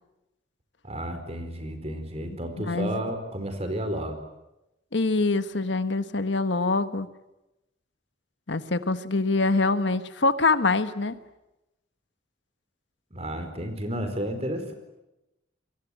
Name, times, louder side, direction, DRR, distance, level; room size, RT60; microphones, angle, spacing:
voice 1, 0.8-4.2 13.1-14.7, right 1 dB, 35° right, 8 dB, 4.5 m, -32 dB
voice 2, 2.6-3.0 4.9-7.1 8.5-11.2, left 3 dB, 85° left, 11 dB, 1.4 m, -24 dB
27.0 x 22.5 x 9.2 m, 0.95 s
head